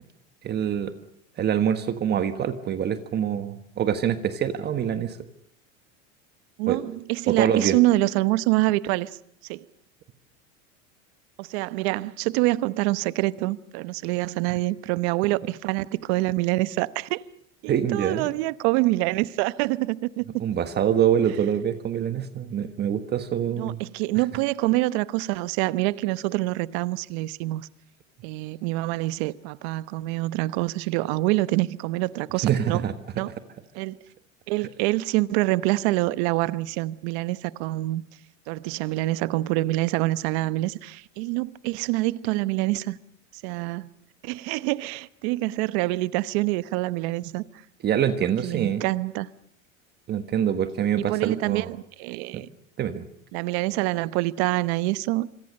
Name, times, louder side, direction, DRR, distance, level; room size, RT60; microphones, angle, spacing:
voice 1, 0.4-0.9 1.4-5.2 6.7-6.8 7.3-7.8 17.7-18.3 20.4-23.8 32.4-32.9 47.8-48.8 50.1-51.7 52.3-52.4 52.8-53.0, right 9 dB, 25° right, 1.4 m, -25 dB
voice 2, 6.6-9.1 9.5-9.7 11.4-17.2 17.6-20.4 23.6-27.7 28.2-32.9 33.2-33.3 33.7-34.0 34.5-38.0 38.5-43.0 43.4-43.9 44.2-47.4 48.4-49.3 51.0-52.5 53.3-55.3, right 19 dB, 55° right, 1.0 m, -26 dB
26.5 x 24.0 x 6.6 m
supercardioid pair, 140°, 38 cm